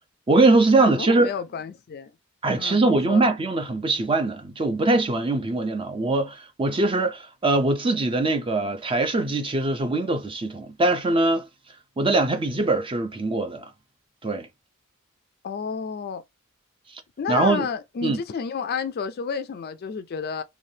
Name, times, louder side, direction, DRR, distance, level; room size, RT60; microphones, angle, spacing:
voice 1, 0.3-1.3 2.4-11.5 12.0-13.7 14.2-14.5 17.3-17.7 18.0-18.2, right 2 dB, 25° right, 0.5 m, -22 dB
voice 2, 0.8-2.1 2.6-3.2 15.4-16.2 17.2-20.4, left 6 dB, 45° left, 0.4 m, -31 dB
3.2 x 2.3 x 2.7 m
head